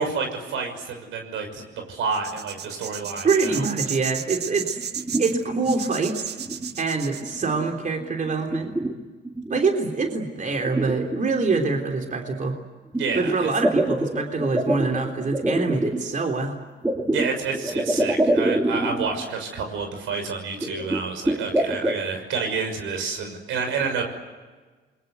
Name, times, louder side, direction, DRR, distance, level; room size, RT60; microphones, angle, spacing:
voice 1, 0.0-3.6 12.9-13.5 17.1-24.0, right 5 dB, 85° right, 5 dB, 6.0 m, -29 dB
sound 1, 2.1-7.3, right 8 dB, 55° right, 1.2 m, -33 dB
voice 2, 3.2-4.8 5.2-6.4 6.8-8.7 9.5-12.5 13.1-16.6, right 4 dB, 40° right, 3 dB, 3.4 m, -25 dB
sound 2, 4.8-6.0 6.4-6.8 7.2-7.7 8.0-9.6 10.1-10.2 10.5-11.8 12.9-16.0 16.8-19.3 19.6-19.7 19.9-20.0 20.6-22.0, right 1 dB, 10° right, 2.8 m, -26 dB
28.5 x 22.5 x 8.1 m, 1.4 s
cardioid pair, 90°, 20 cm